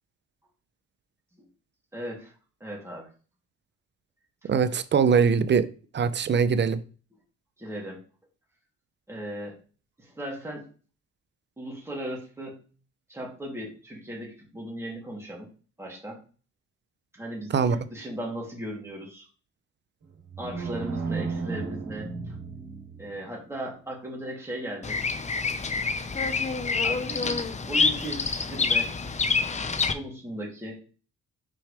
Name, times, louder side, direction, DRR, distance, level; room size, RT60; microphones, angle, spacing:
voice 1, 1.9-2.3 2.6-3.1 7.6-8.0 9.1-9.6 10.0-10.7 11.6-12.6 13.1-15.5 15.8-16.2 17.1-19.2 20.4-22.4 23.0-25.0 26.8-28.9 29.9-30.8, right 1 dB, 10° right, -3 dB, 3.0 m, -37 dB
voice 2, 4.5-5.7 5.9-6.8 17.5-17.8, right 6 dB, 35° right, 13 dB, 0.6 m, -22 dB
sound 1, 20.0-23.3, right 4 dB, 65° right, 2.8 m, -34 dB
Bird vocalization bird call bird song, 24.8-29.9, left 4 dB, 25° left, 0.6 m, -27 dB
6.1 x 4.7 x 3.4 m, 0.37 s
cardioid pair, 90°, 30 cm